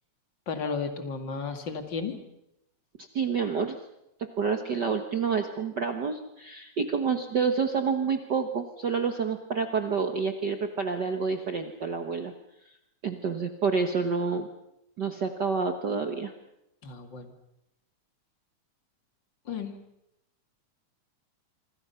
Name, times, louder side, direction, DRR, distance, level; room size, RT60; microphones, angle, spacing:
voice 1, 0.5-2.2 16.8-17.3 19.5-19.7, left 5 dB, 40° left, 6 dB, 2.6 m, -33 dB
voice 2, 3.1-3.8 4.2-12.3 13.0-14.5 15.0-16.3, right 5 dB, 50° right, 6 dB, 1.3 m, -28 dB
26.0 x 26.0 x 5.7 m, 0.84 s
omnidirectional pair, 3.3 m